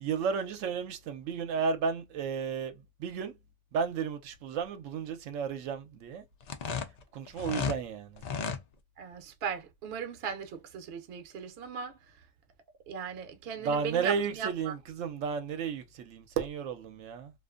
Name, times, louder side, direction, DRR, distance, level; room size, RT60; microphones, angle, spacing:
voice 1, 0.0-3.3 3.7-6.2 7.1-8.2 13.6-17.3, right 6 dB, 85° right, 0.9 m, -33 dB
sound 1, 6.4-7.8 8.2-8.6, left 6 dB, 85° left, 0.3 m, -33 dB
voice 2, 9.0-12.0 12.9-14.7, right 6 dB, 60° right, 0.8 m, -38 dB
2.5 x 2.4 x 2.3 m
omnidirectional pair, 1.3 m